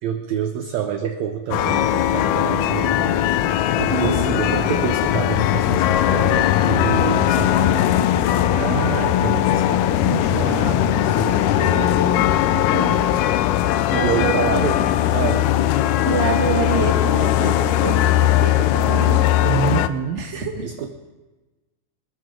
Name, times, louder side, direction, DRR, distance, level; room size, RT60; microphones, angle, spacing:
voice 1, 0.0-3.2 3.8-8.0 8.5-12.0 13.9-15.5 19.4-20.2 20.6-20.9, right 8 dB, 75° right, 6 dB, 1.6 m, -27 dB
sound 1, 1.5-19.9, left 12 dB, 80° left, 1.9 m, -19 dB
voice 2, 3.9-4.3 12.5-13.0 13.9-14.3 16.0-19.2 20.2-20.6, right 4 dB, 25° right, 0 dB, 1.7 m, -26 dB
25.5 x 14.0 x 3.7 m, 1.2 s
omnidirectional pair, 4.1 m